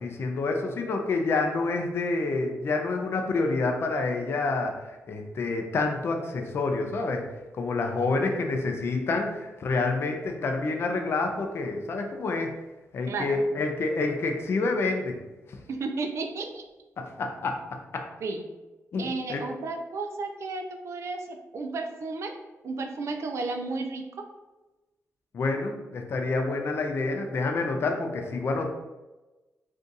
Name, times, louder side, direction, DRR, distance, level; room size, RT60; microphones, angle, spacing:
voice 1, 0.0-7.2 7.6-12.5 12.9-15.2 17.2-17.5 17.9-18.0 18.9-19.5 25.3-28.7, left 3 dB, 50° left, 3 dB, 0.4 m, -28 dB
voice 2, 13.1-13.4 15.7-16.6 18.2-18.4 19.0-22.3 22.6-24.3, right 3 dB, 60° right, 5 dB, 0.4 m, -33 dB
2.6 x 2.4 x 3.8 m, 1.1 s
wide cardioid pair, 130°, 5 cm